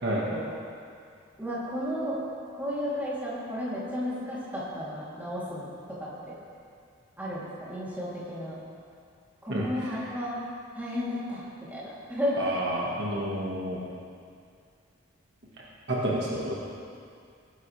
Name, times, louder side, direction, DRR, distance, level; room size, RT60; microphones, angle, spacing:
voice 1, 1.4-2.2 2.5-6.3 7.2-8.6 9.4-10.4 10.7-11.4 11.7-12.4, equal, 10° right, -9 dB, 3.2 m, -33 dB
voice 2, 9.5-10.0 12.4-13.8 15.9-16.6, right 1 dB, 55° right, -5 dB, 1.8 m, -29 dB
19.5 x 10.5 x 3.4 m, 2.3 s
head